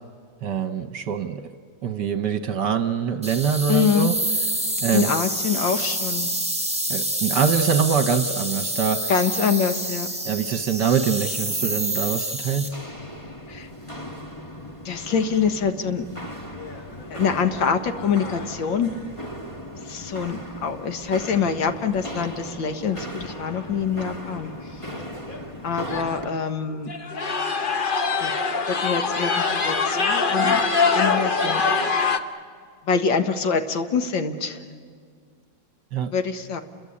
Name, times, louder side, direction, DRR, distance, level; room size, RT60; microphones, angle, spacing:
voice 1, 0.4-1.5 1.8-4.1 4.8-5.1 6.9-9.0 10.2-12.7 35.9-36.1, right 7 dB, 65° right, 9 dB, 1.5 m, -24 dB
sound 1, 3.2-12.7, right 1 dB, 5° right, 3.2 m, -27 dB
voice 2, 3.7-4.1 4.9-6.3 9.1-10.1 13.5-13.7 14.9-16.0 17.1-18.9 19.9-24.5 25.6-26.9 28.2-28.3 28.7-30.6 31.0-31.9 32.9-34.6 36.1-36.6, left 6 dB, 75° left, 7 dB, 2.1 m, -25 dB
Walk footsteps, 12.5-26.3, equal, 20° left, 1.4 m, -37 dB
sound 2, 16.6-17.0 17.5-17.6 18.0-18.5 21.7-21.8 22.9-23.0 23.3-23.6 24.1-24.2 24.9-25.0 25.3-25.4 25.9-26.3 26.9-32.2, left 4 dB, 35° left, 0.9 m, -24 dB
29.5 x 22.0 x 8.5 m, 2.1 s
omnidirectional pair, 2.1 m